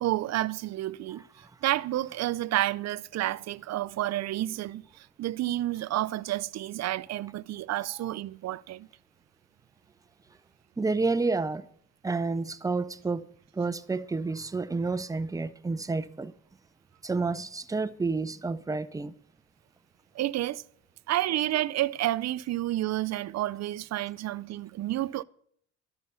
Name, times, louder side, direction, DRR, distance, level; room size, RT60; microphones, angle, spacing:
voice 1, 0.0-1.2 1.6-8.9 20.2-20.6 21.1-25.2, right 14 dB, 60° right, 0.5 m, -30 dB
voice 2, 10.8-11.6 12.0-13.3 13.6-16.3 17.0-19.1, right 3 dB, 10° right, 0.6 m, -30 dB
12.0 x 6.9 x 6.8 m
cardioid pair, 90°, 30 cm